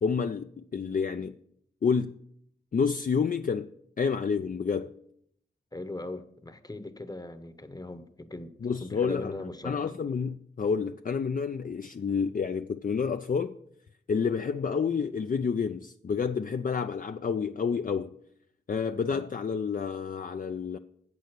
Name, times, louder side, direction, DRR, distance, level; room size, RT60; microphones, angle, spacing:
voice 1, 0.0-1.4 1.8-2.1 2.7-3.7 4.0-4.9 8.6-13.5 14.1-18.1 18.7-20.8, left 6 dB, 45° left, 0.4 m, -29 dB
voice 2, 5.7-9.8 19.1-19.2, left 2 dB, 20° left, 0.8 m, -40 dB
8.1 x 6.1 x 6.6 m
wide cardioid pair, 50°, 20 cm